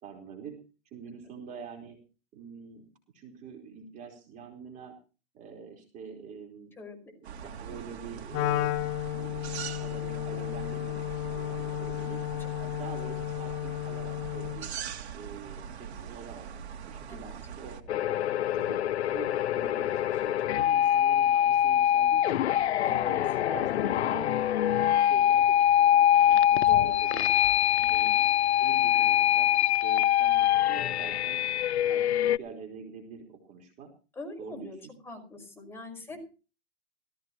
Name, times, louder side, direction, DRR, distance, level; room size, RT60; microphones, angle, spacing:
voice 1, 0.0-0.6 0.9-2.0 2.3-2.8 3.1-4.9 5.3-6.7 7.3-8.7 9.1-12.2 12.6-14.7 15.1-16.5 16.9-18.2 18.5-22.4 23.0-23.2 23.5-27.3 27.9-28.2 28.6-31.4 31.9-33.9 34.4-34.7, right 6 dB, 25° right, 2 dB, 4.4 m, -45 dB
sound 1, 7.2-17.8, right 7 dB, 75° right, 3.0 m, -42 dB
voice 2, 7.4-7.8 12.6-12.7 17.1-17.3 22.9-23.1 26.5-27.0 27.8-28.2 34.2-34.8 35.0-36.2, left 2 dB, 5° left, 3 dB, 5.6 m, -44 dB
Wind instrument woodwind instrument, 8.3-14.7, left 16 dB, 25° left, 0.7 m, -33 dB
sound 2, 17.9-32.4, left 11 dB, 80° left, 0.6 m, -24 dB
18.5 x 16.0 x 3.1 m, 0.34 s
hypercardioid pair, 155°, 33 cm